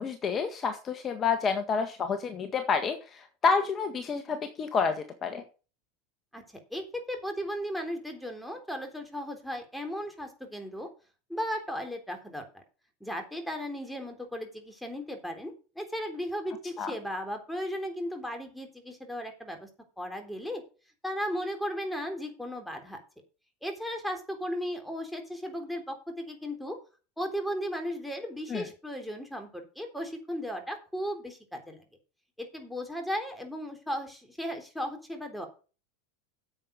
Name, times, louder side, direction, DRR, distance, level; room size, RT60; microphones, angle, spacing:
voice 1, 0.0-5.4 16.8-16.9 28.5-28.6, left 5 dB, 30° left, 7 dB, 1.6 m, -29 dB
voice 2, 6.7-10.9 11.3-12.6 13.0-19.7 20.0-20.6 21.0-23.0 23.6-26.8 27.2-31.8 32.4-35.5, equal, ahead, 4 dB, 3.6 m, -36 dB
9.7 x 7.8 x 5.3 m, 0.34 s
hypercardioid pair, 105°, 0 cm